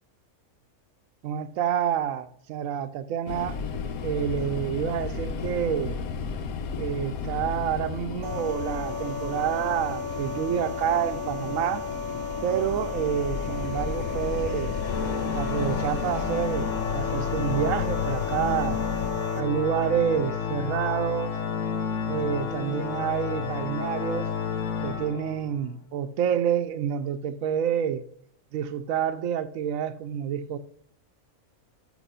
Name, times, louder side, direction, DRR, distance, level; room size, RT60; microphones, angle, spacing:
voice 1, 1.2-3.6 4.0-6.0 6.8-11.8 12.4-14.7 15.3-18.8 19.4-21.4 22.1-24.3 24.8-28.0 28.5-30.6, right 9 dB, 75° right, 1.0 m, -28 dB
sound 1, 3.3-19.1, left 6 dB, 85° left, 1.2 m, -34 dB
sound 2, 8.2-19.4, left 4 dB, 30° right, 0.7 m, -35 dB
Organ, 14.8-25.7, left 6 dB, 65° left, 1.1 m, -31 dB
6.5 x 6.0 x 5.5 m
omnidirectional pair, 1.5 m